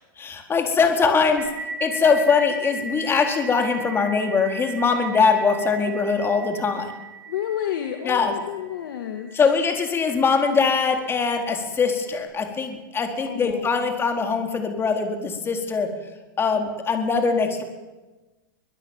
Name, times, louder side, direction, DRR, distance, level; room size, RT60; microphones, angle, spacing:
voice 1, 0.2-1.4 1.8-6.9 8.0-8.3 9.3-15.9 16.4-17.6, left 5 dB, 20° left, 4 dB, 4.2 m, -22 dB
sound 1, 1.4-10.6, right 2 dB, 80° right, 6.6 m, -37 dB
voice 2, 7.3-9.4 13.2-14.0, left 10 dB, 70° left, 5 dB, 2.4 m, -31 dB
23.5 x 21.5 x 7.5 m, 1.2 s
hypercardioid pair, 125°, 12 cm